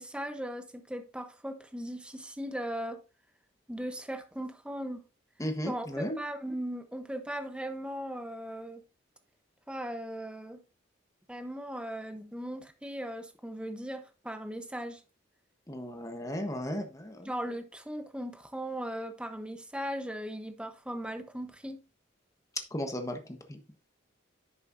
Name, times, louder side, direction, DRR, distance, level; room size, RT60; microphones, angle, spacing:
voice 1, 0.0-3.0 3.7-5.0 5.7-8.8 9.7-10.6 11.3-15.0 17.2-21.8, equal, 5° right, 0.9 m, -38 dB
voice 2, 5.4-6.1 15.7-17.3 22.7-23.6, equal, 15° left, 1.2 m, -35 dB
11.0 x 6.5 x 2.6 m
head